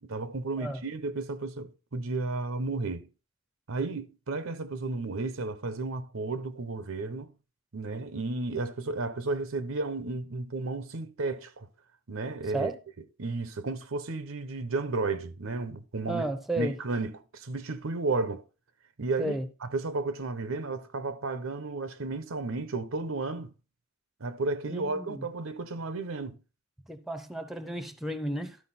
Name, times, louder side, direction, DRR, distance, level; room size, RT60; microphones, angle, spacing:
voice 1, 0.0-3.1 3.7-7.3 7.7-11.7 12.1-12.7 13.2-16.2 16.6-18.4 19.0-19.4 19.6-23.5 24.2-26.4, right 3 dB, 75° right, 0.8 m, -33 dB
voice 2, 16.1-16.8 19.2-19.5 24.7-25.3 26.9-28.6, right 1 dB, ahead, 0.7 m, -33 dB
12.5 x 4.7 x 4.2 m
head